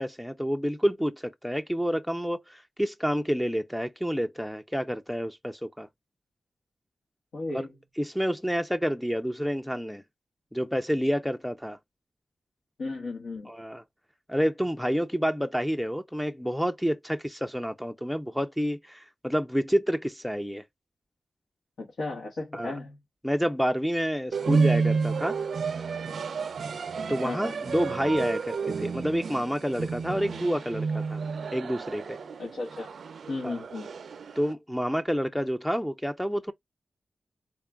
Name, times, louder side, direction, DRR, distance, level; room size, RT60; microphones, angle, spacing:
voice 1, 0.0-5.9 7.5-7.6 8.0-10.0 10.5-11.8 13.5-13.8 14.3-20.6 22.5-22.7 23.2-25.3 27.1-31.2 31.5-32.2 33.4-33.5 34.4-36.5, equal, ahead, 0.4 m, -29 dB
voice 2, 7.3-7.7 12.8-13.5 21.8-23.0 27.2-27.5 32.4-32.9 33.3-33.9, left 2 dB, 85° left, 1.3 m, -34 dB
sound 1, 24.3-34.5, right 5 dB, 75° right, 0.4 m, -30 dB
3.7 x 2.3 x 3.4 m
wide cardioid pair, 110°, 0 cm